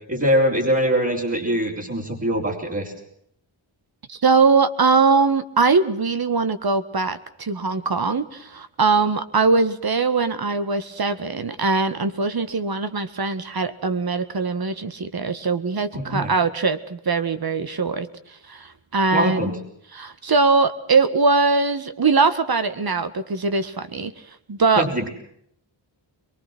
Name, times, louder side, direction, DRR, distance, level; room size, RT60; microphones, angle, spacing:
voice 1, 0.0-2.9 15.9-16.3 19.1-19.6 24.8-25.1, equal, 30° right, -4 dB, 4.6 m, -23 dB
voice 2, 4.1-18.1 18.5-19.5 19.9-24.1 24.5-25.1, right 4 dB, 50° right, 11 dB, 1.8 m, -21 dB
23.5 x 23.0 x 6.2 m, 0.70 s
wide cardioid pair, 80°, 48 cm